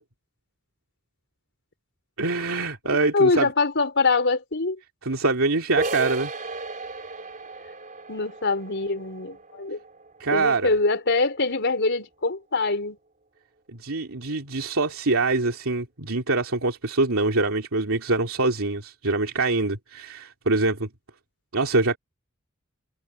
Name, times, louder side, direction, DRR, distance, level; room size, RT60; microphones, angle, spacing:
voice 1, 2.2-3.5 5.0-6.3 10.2-10.7 13.7-20.9 21.5-22.0, right 3 dB, 80° right, 2.7 m, -24 dB
voice 2, 3.1-4.8 8.1-9.8 10.3-13.0, left 3 dB, 55° left, 4.5 m, -23 dB
sound 1, 5.8-11.2, right 2 dB, 40° right, 3.9 m, -34 dB
head